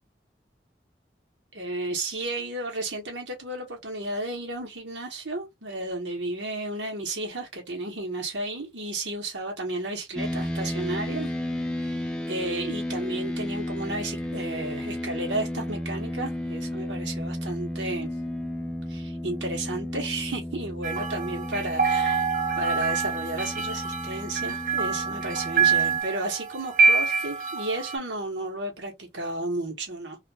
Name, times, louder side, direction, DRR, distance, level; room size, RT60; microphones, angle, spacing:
voice 1, 1.5-11.3 11.8-18.1 18.9-22.3 22.6-30.2, right 2 dB, 90° right, 1.2 m, -33 dB
sound 1, 10.1-26.0, left 1 dB, 5° left, 0.4 m, -33 dB
sound 2, 20.8-28.0, right 5 dB, 45° right, 0.7 m, -26 dB
2.8 x 2.5 x 2.8 m
head